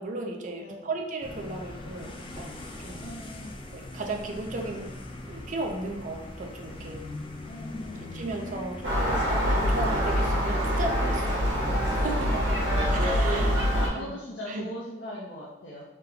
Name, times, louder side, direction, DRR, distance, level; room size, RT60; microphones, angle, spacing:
voice 1, 0.0-3.0 3.7-4.9 5.3-7.0 8.1-11.4 11.9-12.3 12.9-13.5 13.9-14.2 14.5-14.7, right 2 dB, 45° right, 1 dB, 0.5 m, -35 dB
voice 2, 0.6-0.9 3.0-3.6 7.4-8.1 10.7-10.9 12.6-15.8, left 1 dB, 85° left, -5 dB, 0.7 m, -39 dB
sound 1, 1.2-10.3, left 1 dB, 30° left, 0.4 m, -41 dB
Gull seagull, 8.8-13.9, equal, 65° right, 1.3 m, -25 dB
3.7 x 2.8 x 3.6 m, 0.98 s
head